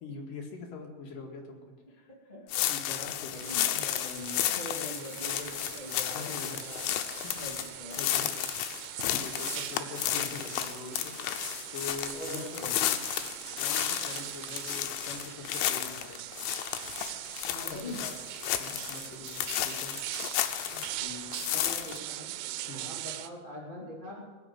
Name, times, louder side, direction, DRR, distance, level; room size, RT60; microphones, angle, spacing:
voice 1, 0.0-2.1 2.7-3.5 6.1-6.7 7.2-7.3 8.0-8.2 8.7-13.0 13.6-16.2 17.8-18.2 18.6-19.9 22.7-22.9, left 4 dB, 55° left, 1 dB, 3.1 m, -43 dB
voice 2, 2.1-2.6 3.4-8.3 10.1-10.4 12.1-12.8 17.4-18.0 20.6-22.3 22.7-24.2, left 1 dB, 15° left, -5 dB, 1.9 m, -43 dB
sound 1, 2.5-21.0 21.3-22.0, left 12 dB, 85° left, 3.1 m, -33 dB
sound 2, 3.3-23.3, right 14 dB, 80° right, 2.8 m, -41 dB
20.0 x 6.8 x 8.8 m, 1.4 s
omnidirectional pair, 5.2 m